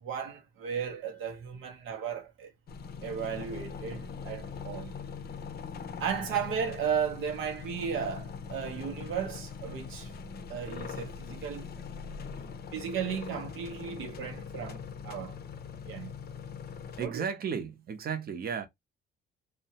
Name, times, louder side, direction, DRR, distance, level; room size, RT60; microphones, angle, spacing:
voice 1, 0.0-2.5 3.0-4.9 6.0-10.1 10.5-11.7 12.7-15.4 15.9-16.1 17.0-17.2, right 7 dB, 85° right, 0.7 m, -35 dB
sound 1, 2.7-17.1, left 6 dB, 50° left, 0.5 m, -42 dB
voice 2, 17.0-18.7, right 7 dB, 50° right, 0.7 m, -34 dB
2.7 x 2.1 x 2.7 m
cardioid pair, 90°, 20 cm